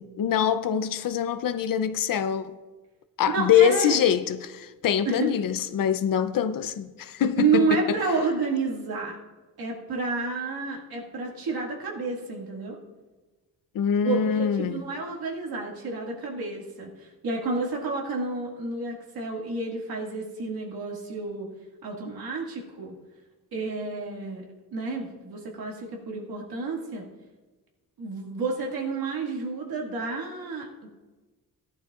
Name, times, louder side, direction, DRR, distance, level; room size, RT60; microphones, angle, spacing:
voice 1, 0.0-2.6 3.2-8.0 13.7-14.8, left 8 dB, 65° left, 0.6 m, -24 dB
voice 2, 3.3-4.0 5.1-5.3 7.4-9.2 9.6-12.8 14.0-21.5 21.8-22.9 23.5-24.4 24.7-27.1 28.0-30.9, right 4 dB, 80° right, 2.1 m, -30 dB
17.0 x 11.5 x 2.4 m
wide cardioid pair, 170°, 36 cm